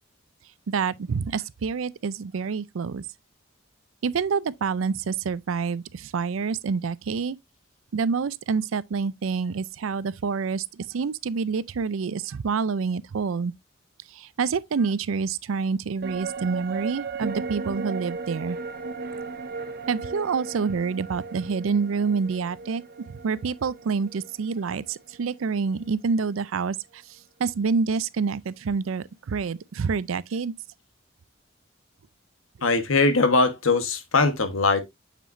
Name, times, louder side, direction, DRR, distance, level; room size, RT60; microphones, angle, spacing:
voice 1, 0.7-3.0 4.0-7.4 7.9-13.5 14.1-18.6 19.9-27.0 27.4-30.5, right 5 dB, 80° right, 0.4 m, -27 dB
sound 1, 16.0-25.5 25.8-25.9, right 4 dB, 50° right, 0.7 m, -36 dB
voice 2, 32.6-34.8, left 3 dB, 80° left, 1.3 m, -21 dB
6.8 x 6.1 x 2.5 m
head